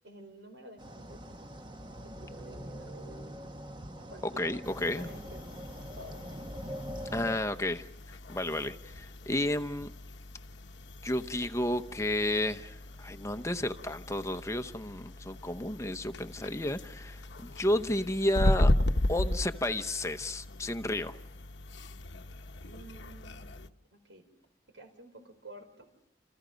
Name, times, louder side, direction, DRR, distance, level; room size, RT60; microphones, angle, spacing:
voice 1, 0.0-1.2 2.0-3.4 4.1-5.7 6.0-6.2 22.6-24.2 24.7-25.9, right 1 dB, 80° right, 4.6 m, -51 dB
sound 1, 0.8-7.4, equal, 25° right, 1.2 m, -43 dB
voice 2, 4.2-5.1 7.1-7.9 8.3-9.9 11.0-18.7 19.1-21.2, left 1 dB, 15° left, 0.9 m, -32 dB
sound 2, 4.6-23.7, left 1 dB, 75° left, 1.1 m, -36 dB
29.0 x 29.0 x 5.2 m
head